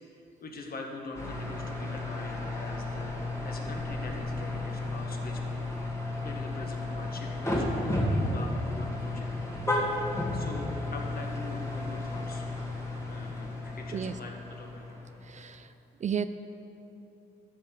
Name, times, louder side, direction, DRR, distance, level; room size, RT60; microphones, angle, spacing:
voice 1, 0.4-5.7 6.2-9.3 9.9-12.7 13.1-14.8, left 2 dB, 50° left, 1 dB, 1.6 m, -43 dB
sound 1, 1.1-15.5, left 2 dB, 15° left, 2.2 m, -33 dB
voice 2, 15.2-15.7 16.0-16.2, right 7 dB, 35° right, 11 dB, 0.4 m, -32 dB
13.0 x 5.6 x 7.0 m, 2.9 s
cardioid pair, 90°, 20 cm